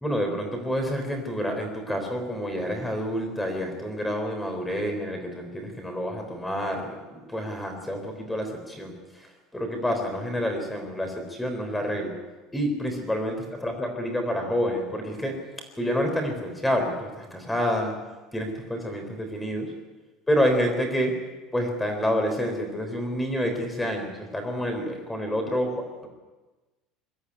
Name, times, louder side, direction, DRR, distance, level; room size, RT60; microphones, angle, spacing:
voice 1, 0.0-12.2 12.5-15.4 15.8-17.9 18.3-19.7 20.3-21.2 21.5-26.1, equal, 5° left, 4 dB, 3.8 m, -28 dB
22.5 x 13.0 x 10.0 m, 1.2 s
cardioid pair, 170°, 0 cm